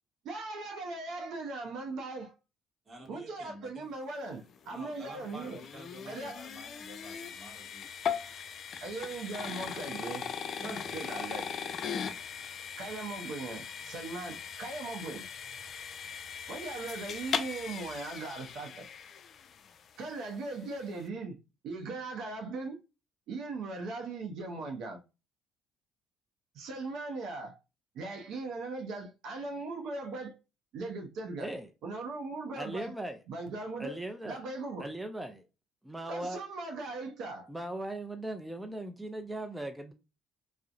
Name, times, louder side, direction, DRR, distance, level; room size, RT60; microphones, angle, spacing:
voice 1, 0.2-2.3 3.1-5.6 6.1-6.4 8.8-10.3 10.6-11.5 12.8-15.2 16.5-18.9 20.0-21.4 21.6-22.8 23.3-25.0 26.5-27.6 27.9-30.4 30.7-31.5 31.8-32.9 33.3-34.0 34.2-34.9 36.1-37.5, right 3 dB, 70° right, 0.5 m, -39 dB
voice 2, 2.9-3.9 4.7-7.9 10.6-11.4, right 1 dB, 40° right, 1.0 m, -50 dB
sound 1, 4.6-19.8, left 7 dB, 55° left, 0.3 m, -39 dB
voice 3, 31.4-31.7 32.6-33.2 33.8-34.4 34.8-35.4 35.8-36.4 37.5-39.9, right 1 dB, 10° right, 0.4 m, -38 dB
2.7 x 2.0 x 2.4 m
supercardioid pair, 75°, 0 cm